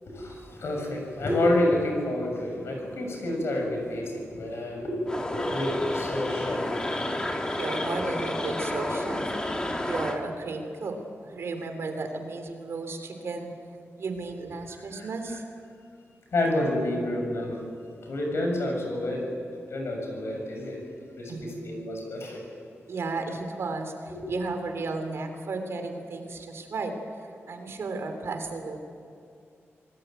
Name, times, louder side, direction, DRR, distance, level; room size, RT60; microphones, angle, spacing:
voice 1, 0.0-6.9 14.9-15.1 16.3-17.6 18.0-19.3 19.7-20.8 21.2-22.4 24.1-24.2, left 1 dB, 65° left, 2 dB, 7.1 m, -29 dB
sound 1, 5.1-10.2, left 1 dB, 15° left, 1.9 m, -30 dB
voice 2, 7.1-9.3 9.8-11.0 11.2-13.5 14.0-15.4 21.3-21.6 22.9-26.9 27.2-28.8, right 3 dB, 65° right, 6 dB, 3.3 m, -34 dB
26.5 x 19.5 x 9.1 m, 2.4 s
wide cardioid pair, 175°, 5 cm